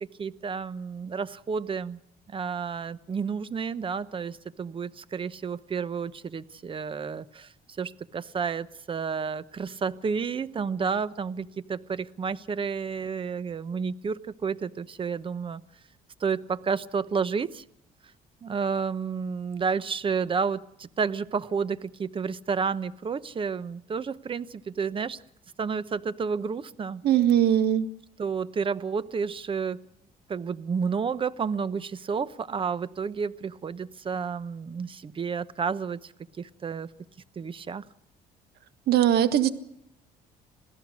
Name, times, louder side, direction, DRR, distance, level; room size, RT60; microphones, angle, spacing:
voice 1, 0.2-2.0 2.3-7.5 7.8-15.6 16.2-17.6 18.4-25.2 25.6-27.0 28.2-29.8 30.3-36.1 36.4-36.9 37.4-37.8, right 5 dB, 30° right, 16 dB, 0.9 m, -31 dB
voice 2, 27.0-27.9 38.9-39.5, right 11 dB, 70° right, 11 dB, 1.6 m, -20 dB
26.5 x 17.0 x 6.4 m, 0.76 s
cardioid pair, 110°, 17 cm